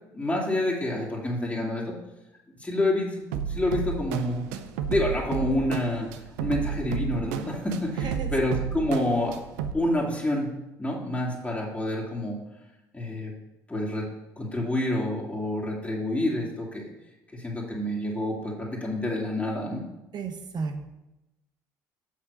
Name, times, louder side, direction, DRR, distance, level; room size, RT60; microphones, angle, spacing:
voice 1, 0.1-2.0 2.6-4.5 4.9-6.1 6.4-9.3 9.7-10.5 10.8-12.4 12.9-13.3 13.7-14.1 14.4-16.9 17.3-19.8, left 1 dB, 15° left, -3 dB, 2.3 m, -28 dB
sound 1, 3.3-9.7, right 7 dB, 85° right, 0.6 m, -32 dB
voice 2, 8.0-8.4 20.1-20.9, right 4 dB, 55° right, 6 dB, 1.2 m, -33 dB
6.9 x 5.6 x 6.6 m, 0.96 s
hypercardioid pair, 60°, 9 cm